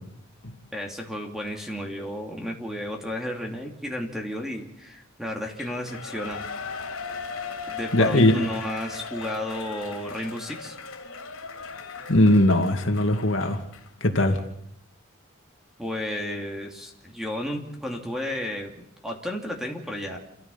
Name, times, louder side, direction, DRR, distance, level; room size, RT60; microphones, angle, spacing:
voice 1, 0.7-6.8 7.7-10.8 15.8-20.2, left 1 dB, ahead, 2 dB, 2.8 m, -33 dB
Shout / Cheering, 5.6-13.9 14.3-14.4, left 5 dB, 85° left, 3.1 m, -38 dB
voice 2, 7.9-8.3 12.1-13.6 14.0-14.4, left 1 dB, 65° left, 5 dB, 2.4 m, -19 dB
28.0 x 14.5 x 7.2 m, 0.77 s
head